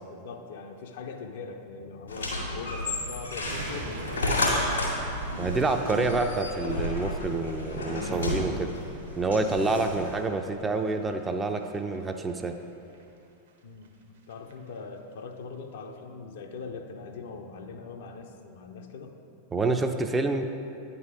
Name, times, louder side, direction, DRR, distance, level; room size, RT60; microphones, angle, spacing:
voice 1, 0.0-4.8 13.6-19.1, left 4 dB, 55° left, 4 dB, 0.6 m, -41 dB
sound 1, 2.1-10.2, left 1 dB, 80° left, 1.9 m, -31 dB
sound 2, 3.4-12.6 12.9-13.1 13.5-13.6 13.8-13.9 14.2-14.5 14.8-14.9, right 3 dB, 60° right, 0.8 m, -44 dB
voice 2, 5.4-8.7 9.2-12.5 19.5-20.5, right 3 dB, 15° right, 6 dB, 0.4 m, -27 dB
9.3 x 4.1 x 4.9 m, 2.7 s
figure-of-eight pair, 90°, 0 cm